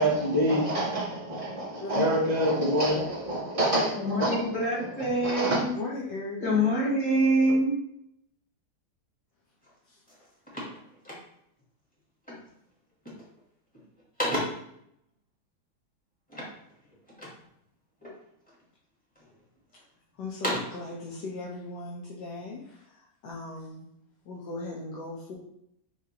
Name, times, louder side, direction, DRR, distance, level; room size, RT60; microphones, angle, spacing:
voice 1, 0.0-4.4 5.2-5.6, right 1 dB, 55° right, -5 dB, 0.3 m, -26 dB
voice 2, 4.0-5.7 6.4-7.8, equal, 50° left, -5 dB, 1.6 m, -25 dB
voice 3, 5.7-6.7 9.9-10.0 20.2-23.9 24.2-25.4, left 3 dB, 80° left, -5 dB, 1.4 m, -37 dB
sound 1, 9.6-9.8 10.1-11.6 12.2-12.6 12.9-13.4 13.7-14.8 16.3-17.5 18.0-18.6 19.2-19.8 20.2-20.9, equal, 5° left, 0.9 m, -35 dB
6.5 x 2.5 x 2.8 m, 0.75 s
omnidirectional pair, 1.9 m